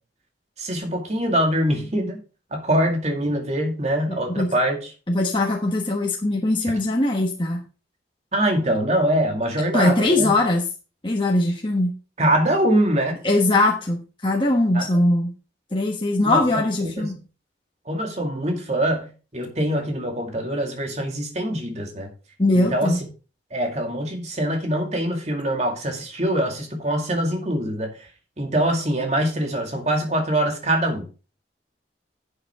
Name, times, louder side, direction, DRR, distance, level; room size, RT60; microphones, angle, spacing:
voice 1, 0.6-2.2 2.5-4.9 8.3-10.4 12.2-13.2 14.7-15.0 16.2-17.1 17.9-22.1 22.5-23.0 23.5-27.9 28.4-31.1, right 1 dB, 40° right, 3 dB, 2.3 m, -24 dB
voice 2, 4.1-4.5 5.1-7.6 9.7-10.7 11.0-11.9 13.2-15.3 15.7-17.2 22.4-23.0, left 2 dB, 25° left, 0 dB, 1.2 m, -21 dB
11.0 x 7.9 x 3.6 m, 0.34 s
head